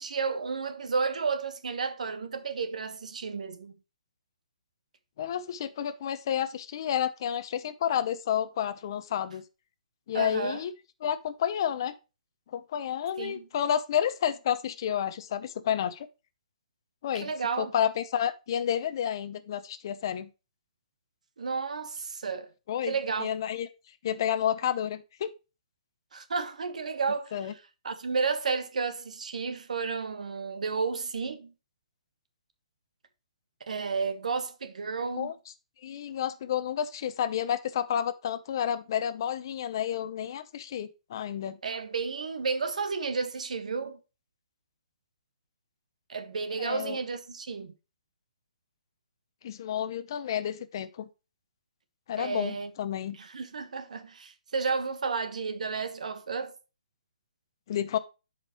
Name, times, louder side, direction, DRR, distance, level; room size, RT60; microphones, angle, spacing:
voice 1, 0.0-3.7 10.1-10.6 13.2-13.4 17.1-17.7 21.4-22.5 22.8-23.3 26.1-27.5 27.8-31.5 33.7-35.3 41.6-44.0 46.1-47.7 52.2-52.7 53.2-56.6, right 5 dB, 70° right, 1.3 m, -32 dB
voice 2, 5.2-9.4 10.1-10.7 11.0-11.9 12.5-16.1 17.0-17.3 17.6-20.3 22.7-22.9 23.2-23.7 24.0-25.3 27.3-27.5 35.2-35.3 35.8-41.6 46.6-47.0 49.4-51.1 52.1-53.2 57.7-58.0, left 9 dB, 35° left, 0.7 m, -30 dB
11.0 x 5.1 x 3.0 m
hypercardioid pair, 170°, 4 cm